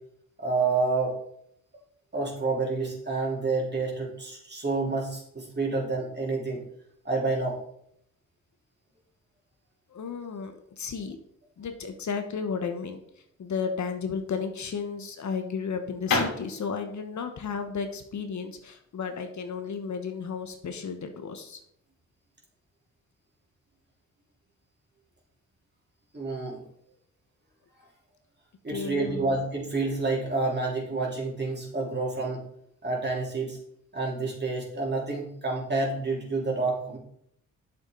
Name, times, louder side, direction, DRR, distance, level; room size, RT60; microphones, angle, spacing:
voice 1, 0.4-1.2 2.1-6.6 7.1-7.6 26.1-26.6 28.6-32.4 32.8-33.6 33.9-37.0, right 3 dB, 30° right, -2 dB, 3.6 m, -29 dB
voice 2, 9.9-11.2 11.6-13.0 13.4-21.6 28.7-29.4, left 5 dB, 60° left, 6 dB, 1.2 m, -33 dB
sound 1, 14.3-19.8, left 4 dB, 80° left, 3.1 m, -33 dB
8.6 x 7.0 x 3.9 m, 0.70 s
cardioid pair, 70°, 33 cm